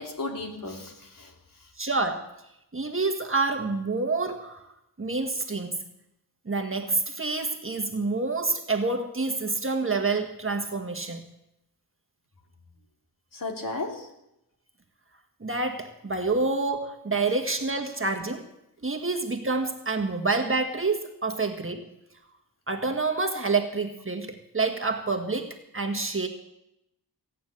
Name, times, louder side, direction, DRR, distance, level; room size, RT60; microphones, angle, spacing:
voice 1, 0.0-1.7 13.3-14.1, left 2 dB, 55° left, 1 dB, 3.1 m, -35 dB
voice 2, 1.8-2.3 2.7-4.7 5.0-5.8 6.4-11.2 15.4-18.5 18.8-21.9 22.7-26.3, right 3 dB, 30° right, 5 dB, 1.6 m, -28 dB
17.0 x 9.3 x 7.9 m, 0.84 s
wide cardioid pair, 95°, 40 cm